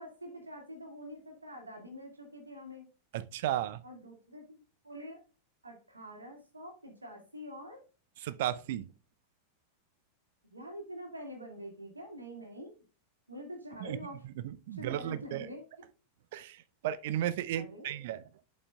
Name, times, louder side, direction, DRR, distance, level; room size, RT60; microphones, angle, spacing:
voice 1, 0.0-2.9 3.8-4.6 4.8-5.2 5.6-7.8 10.5-12.7 13.3-14.2 14.7-15.6 17.5-18.0, equal, 80° right, 2.2 m, -46 dB
voice 2, 3.1-3.8 8.2-8.9 13.8-14.0 14.4-15.5 16.3-18.2, right 12 dB, 55° right, 0.4 m, -34 dB
11.0 x 5.3 x 2.3 m
figure-of-eight pair, 90°, 0 cm